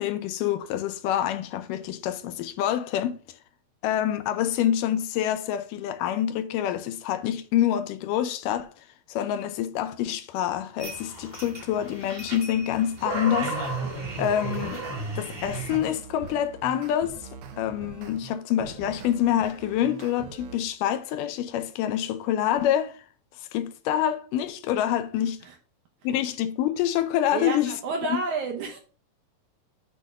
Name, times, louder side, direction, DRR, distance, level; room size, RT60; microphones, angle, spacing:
voice 1, 0.0-3.2 3.8-8.7 9.1-13.6 14.2-14.8 15.2-17.2 17.6-23.0 23.5-25.4 26.0-27.7 28.0-28.2, left 11 dB, 80° left, 2.1 m, -26 dB
sound 1, 10.8-15.8, right 2 dB, 30° right, 1.1 m, -33 dB
sound 2, 13.6-15.0 15.4-20.6, right 6 dB, 85° right, 2.7 m, -43 dB
voice 2, 27.3-28.8, right 4 dB, 70° right, 2.1 m, -30 dB
8.5 x 3.4 x 5.2 m
omnidirectional pair, 4.1 m